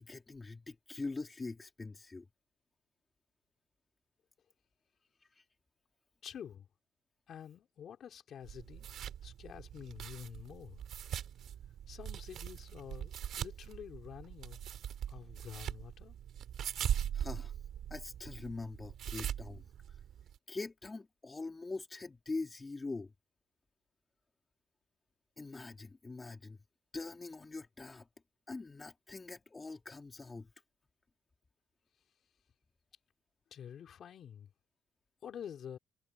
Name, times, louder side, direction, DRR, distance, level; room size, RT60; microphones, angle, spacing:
voice 1, 0.0-2.3 5.2-5.5 17.1-17.6 17.9-20.0 20.5-23.1 25.4-26.6 26.9-28.1 28.5-30.5, left 3 dB, 20° left, 2.3 m, -43 dB
voice 2, 6.2-6.7 7.3-8.9 9.2-10.8 11.9-14.6 15.1-16.2 33.5-34.5 35.2-35.8, left 9 dB, 50° left, 3.9 m, -48 dB
sound 1, 8.4-20.4, right 10 dB, 60° right, 2.2 m, -41 dB
cardioid pair, 130°, 0 cm